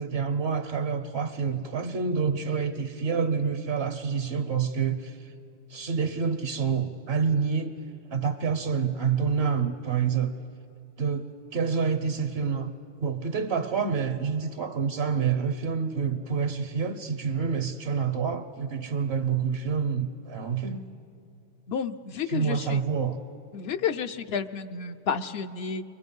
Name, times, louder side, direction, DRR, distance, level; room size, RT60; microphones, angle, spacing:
voice 1, 0.0-5.2 5.7-7.7 8.1-10.3 11.0-11.3 11.5-12.7 13.0-20.8 22.3-23.2, right 6 dB, 70° right, 9 dB, 1.1 m, -27 dB
voice 2, 21.7-22.8 23.5-25.8, left 6 dB, 70° left, 10 dB, 0.9 m, -31 dB
29.0 x 23.0 x 5.4 m, 2.6 s
omnidirectional pair, 1.1 m